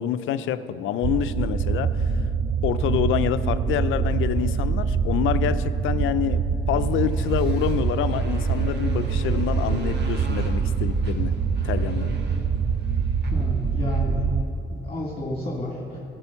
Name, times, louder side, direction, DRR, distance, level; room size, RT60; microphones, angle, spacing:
voice 1, 0.0-1.9 2.6-6.4 6.7-11.3 11.6-12.2, left 10 dB, 80° left, 12 dB, 0.5 m, -26 dB
sound 1, 1.0-14.4, right 5 dB, 35° right, 0.5 m, -24 dB
Motorcycle, 6.7-14.1, right 3 dB, 60° right, 1.6 m, -41 dB
voice 2, 13.3-14.3 14.8-16.0, left 1 dB, 30° left, -2 dB, 1.8 m, -31 dB
15.0 x 6.2 x 7.0 m, 2.7 s
cardioid pair, 90°, 20 cm